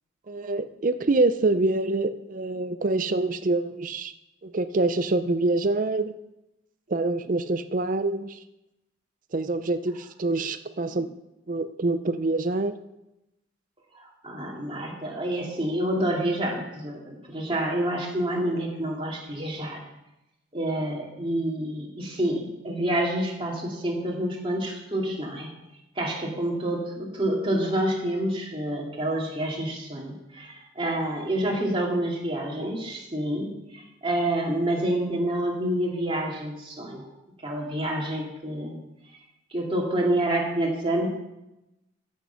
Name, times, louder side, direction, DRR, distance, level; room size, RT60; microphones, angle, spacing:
voice 1, 0.3-4.1 4.4-6.2 6.9-8.4 9.3-11.1 11.5-12.8, right 2 dB, 40° right, 11 dB, 0.5 m, -25 dB
voice 2, 13.9-19.8 20.5-25.5 26.0-37.1 37.4-38.8 39.5-41.1, right 1 dB, 25° right, -2 dB, 2.4 m, -28 dB
14.5 x 6.5 x 5.8 m, 0.93 s
head